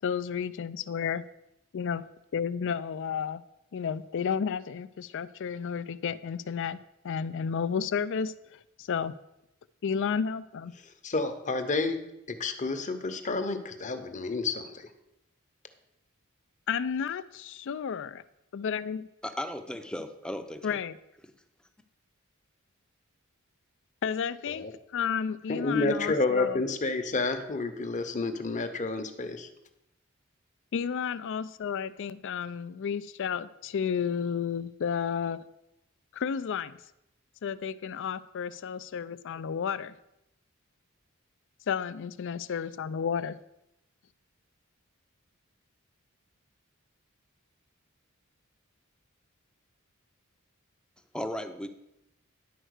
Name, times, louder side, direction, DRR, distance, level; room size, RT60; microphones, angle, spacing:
voice 1, 0.0-1.3 1.7-2.1 2.3-3.4 3.7-6.8 7.0-9.1 9.8-10.8 16.7-18.2 18.5-19.1 20.6-21.0 24.0-26.6 30.7-35.4 36.1-36.8 37.4-40.0 41.7-43.4, left 7 dB, 60° left, 16 dB, 0.4 m, -32 dB
voice 2, 10.8-14.9 24.5-24.7 25.5-29.5, left 3 dB, 35° left, 8 dB, 0.8 m, -30 dB
voice 3, 19.2-20.8 51.1-51.7, left 1 dB, 5° left, 7 dB, 0.6 m, -36 dB
10.0 x 4.4 x 6.4 m, 0.86 s
head